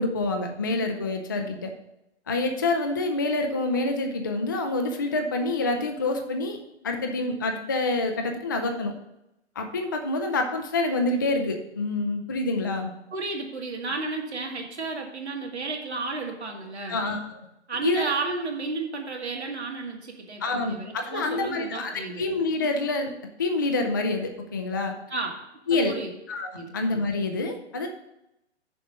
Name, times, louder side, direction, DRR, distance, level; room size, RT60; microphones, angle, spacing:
voice 1, 0.0-1.7 2.3-6.6 6.8-8.9 9.6-12.9 16.9-17.4 17.8-18.1 20.4-23.1 23.4-24.9 25.7-25.9 26.3-27.9, left 2 dB, 20° left, 4 dB, 0.3 m, -27 dB
voice 2, 13.1-17.0 17.7-22.2 25.1-25.3 25.9-26.1 26.5-26.7, right 3 dB, 70° right, 1 dB, 1.9 m, -32 dB
6.7 x 5.0 x 7.0 m, 0.86 s
figure-of-eight pair, 125°, 34 cm